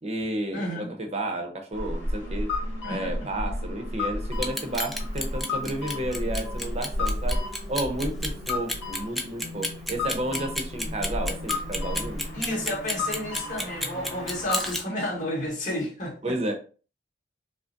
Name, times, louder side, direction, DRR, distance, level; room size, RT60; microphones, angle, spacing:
voice 1, 0.0-2.5 2.9-7.4 7.7-12.3 16.2-16.5, right 1 dB, 35° right, 4 dB, 0.7 m, -32 dB
voice 2, 0.5-0.9 2.8-3.3 12.3-16.1, left 1 dB, 45° left, -4 dB, 1.7 m, -31 dB
sound 1, 1.7-14.7, left 2 dB, 80° left, 1.3 m, -32 dB
sound 2, 2.2-14.4, equal, 85° right, 1.0 m, -44 dB
Clock, 4.3-14.8, equal, ahead, 0.4 m, -31 dB
5.0 x 2.1 x 2.6 m, 0.37 s
head